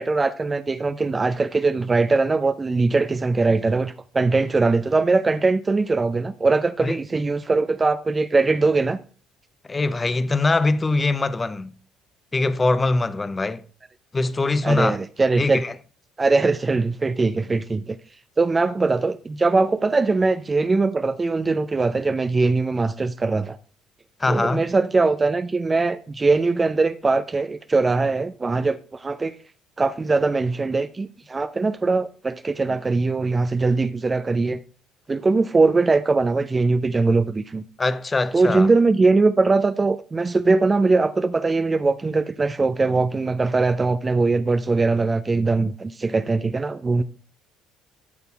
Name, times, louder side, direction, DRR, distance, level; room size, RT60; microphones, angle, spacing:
voice 1, 0.0-9.0 14.6-15.6 16.2-18.0 18.4-23.6 24.3-29.3 29.8-34.6 35.1-37.6 38.3-47.0, right 3 dB, 25° right, 0.4 m, -21 dB
voice 2, 9.7-11.7 12.3-13.6 14.1-15.0 15.4-15.7 24.2-24.6 32.7-32.8 37.8-38.7, left 3 dB, 25° left, 0.6 m, -22 dB
13.0 x 6.7 x 2.3 m
figure-of-eight pair, 50°, 0 cm